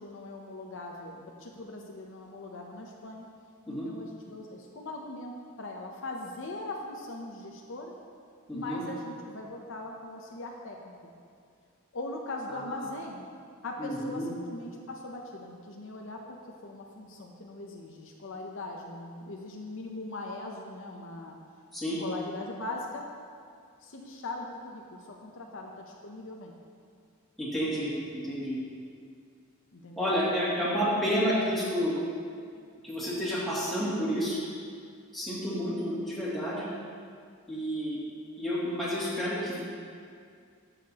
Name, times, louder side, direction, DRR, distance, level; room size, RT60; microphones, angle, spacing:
voice 1, 0.0-3.3 3.7-7.9 8.5-11.1 11.9-13.3 13.6-21.3 22.0-23.1 23.8-26.6 29.7-30.5 30.8-31.5, left 2 dB, 65° left, 1 dB, 0.7 m, -40 dB
voice 2, 8.5-8.8 12.5-12.6 13.8-14.3 21.7-22.0 27.4-28.6 30.0-32.0 32.8-34.4 35.1-36.7 37.5-38.0 38.4-39.6, equal, ahead, -10 dB, 2.4 m, -30 dB
13.5 x 6.7 x 2.9 m, 2.2 s
head